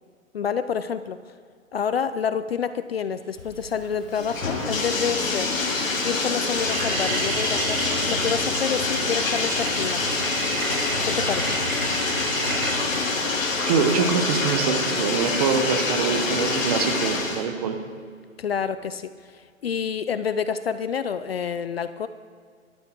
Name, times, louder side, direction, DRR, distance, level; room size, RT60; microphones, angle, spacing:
voice 1, 0.3-1.2 1.7-5.5 6.0-10.1 11.0-11.6 18.4-22.1, left 7 dB, 50° left, 13 dB, 0.5 m, -28 dB
Bathtub (filling or washing), 3.4-17.4, left 3 dB, 70° left, 3.1 m, -26 dB
sound 1, 4.0-4.5 5.2-5.3 5.6-6.0 6.2-15.2, right 3 dB, 90° right, 2.7 m, -32 dB
voice 2, 13.7-17.8, right 6 dB, 25° right, 5 dB, 1.1 m, -24 dB
13.5 x 13.0 x 4.6 m, 2.1 s
hypercardioid pair, 150°, 41 cm